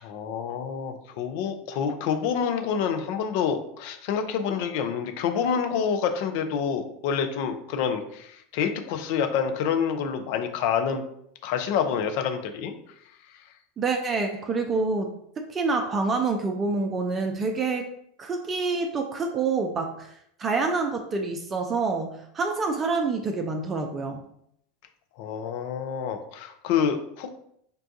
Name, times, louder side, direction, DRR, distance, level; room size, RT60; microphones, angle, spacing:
voice 1, 0.0-11.0 11.4-12.7 25.2-27.3, left 7 dB, 60° left, 7 dB, 0.4 m, -27 dB
voice 2, 13.8-15.1 15.4-17.9 18.2-24.2, right 4 dB, 30° right, 4 dB, 0.4 m, -27 dB
5.2 x 2.2 x 2.6 m, 0.72 s
hypercardioid pair, 85°, 0 cm